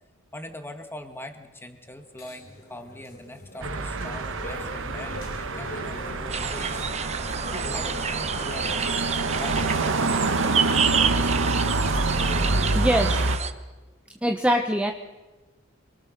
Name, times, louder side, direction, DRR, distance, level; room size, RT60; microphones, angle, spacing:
voice 1, 0.3-6.8 7.1-10.6, left 1 dB, 10° left, 6 dB, 2.0 m, -42 dB
sound 1, 1.9-13.2, left 2 dB, 50° left, 4.2 m, -40 dB
sound 2, 3.6-13.4, right 3 dB, 65° right, 1.3 m, -27 dB
sound 3, 6.3-13.5, right 7 dB, 30° right, 1.1 m, -29 dB
voice 2, 12.7-13.2 14.2-14.9, equal, 5° right, 4 dB, 0.9 m, -23 dB
27.5 x 23.0 x 6.7 m, 1.2 s
head